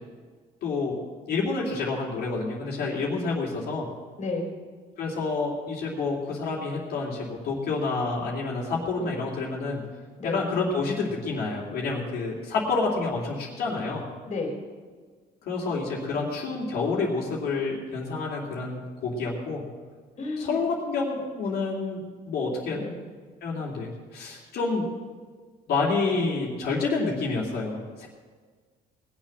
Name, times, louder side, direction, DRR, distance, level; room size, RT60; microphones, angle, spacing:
voice 1, 0.6-1.0 1.3-3.9 5.0-9.8 10.2-14.0 15.5-19.6 20.4-22.0 22.3-22.8 23.4-24.9 25.7-28.1, left 3 dB, 70° left, -4 dB, 2.9 m, -28 dB
voice 2, 4.2-4.5 9.0-9.1 10.2-10.4 14.3-14.5 20.2-20.5 22.7-22.9, left 3 dB, 40° left, 1 dB, 3.5 m, -31 dB
19.5 x 7.3 x 6.5 m, 1.5 s
cardioid pair, 110°, 17 cm